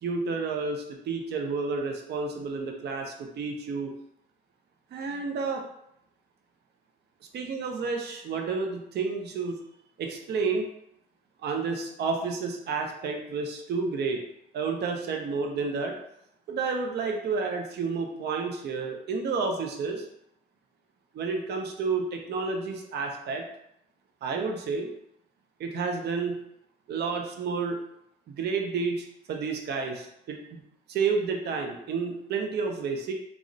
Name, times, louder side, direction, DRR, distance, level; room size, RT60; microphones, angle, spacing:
voice 1, 0.0-3.9 4.9-5.6 7.3-9.6 10.0-10.7 11.4-14.2 14.5-16.0 16.5-20.1 21.1-23.4 24.2-24.9 25.6-26.4 26.9-27.8 28.3-30.6 30.9-33.1, right 4 dB, 55° right, 3 dB, 0.5 m, -30 dB
2.4 x 2.0 x 3.7 m, 0.77 s
cardioid pair, 90°, 20 cm